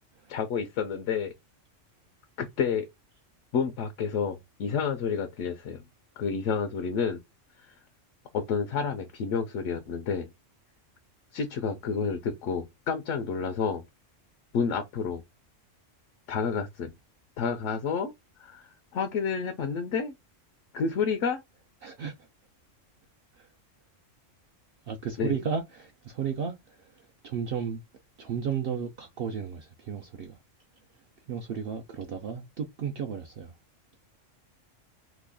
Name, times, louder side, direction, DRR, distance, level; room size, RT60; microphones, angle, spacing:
voice 1, 0.3-1.3 2.4-2.9 3.5-5.8 6.2-7.2 7.6-7.7 8.3-10.3 11.3-13.8 14.5-15.2 16.3-16.9 17.4-18.1 18.4-20.1 20.7-21.4 25.2-25.3, left 6 dB, 75° left, 0.9 m, -30 dB
voice 2, 21.8-22.3 23.3-23.5 24.9-27.8 28.2-30.4 31.3-33.5, right 7 dB, 65° right, 0.6 m, -34 dB
3.0 x 2.3 x 3.5 m
omnidirectional pair, 1.3 m